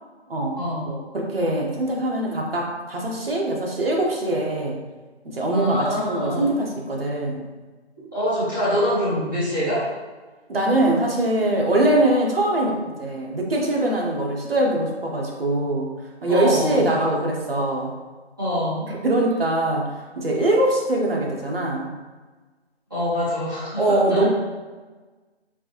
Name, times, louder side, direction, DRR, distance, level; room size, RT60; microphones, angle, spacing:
voice 1, 0.9-4.8 5.2-7.4 10.5-15.9 16.2-17.9 18.9-21.9 23.8-24.3, right 1 dB, 60° right, -1 dB, 0.9 m, -22 dB
voice 2, 5.5-6.5 8.1-9.8 16.3-17.1 18.4-18.8 22.9-24.3, equal, 20° right, -13 dB, 1.0 m, -25 dB
4.4 x 2.6 x 2.9 m, 1.3 s
figure-of-eight pair, 175°, 34 cm